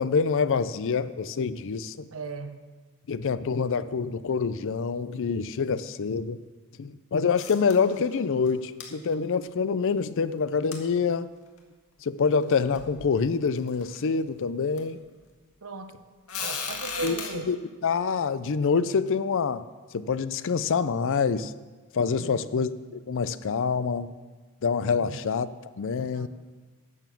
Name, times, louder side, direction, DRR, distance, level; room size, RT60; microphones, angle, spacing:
voice 1, 0.0-2.1 3.1-6.4 6.8-11.3 12.0-15.0 17.0-17.2 17.5-17.6 17.8-19.6 19.9-21.5 21.9-24.1 24.6-25.5 25.8-26.3, left 5 dB, 60° left, 15 dB, 0.5 m, -26 dB
voice 2, 2.1-2.6 15.6-16.0 16.4-17.5 22.2-22.7 25.0-25.3 26.1-26.3, right 3 dB, 70° right, 8 dB, 0.9 m, -37 dB
sound 1, 7.4-8.2 8.4-8.5 8.8-8.9 10.7-10.8 11.6-11.7 12.4-12.5 12.7-13.0 13.6-14.0 14.8-14.9 16.3-17.3, left 5 dB, 85° left, 1.8 m, -35 dB
12.0 x 7.0 x 7.0 m, 1.4 s
head